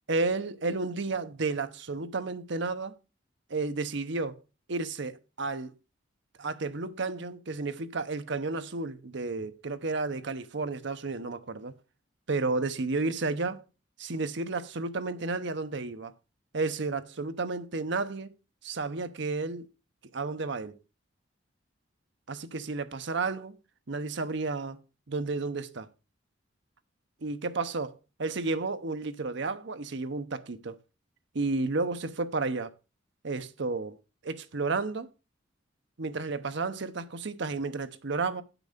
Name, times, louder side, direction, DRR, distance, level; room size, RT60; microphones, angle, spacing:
voice 1, 0.1-2.9 3.5-4.4 4.7-5.7 6.4-11.7 12.3-13.6 14.0-16.1 16.5-18.3 18.6-19.7 20.1-20.8 22.3-23.6 23.9-24.8 25.1-25.9 27.2-27.9 28.2-30.8 31.3-32.7 33.2-34.0 34.2-35.1 36.0-38.4, right 3 dB, 65° right, 0.8 m, -32 dB
9.1 x 6.0 x 5.1 m
head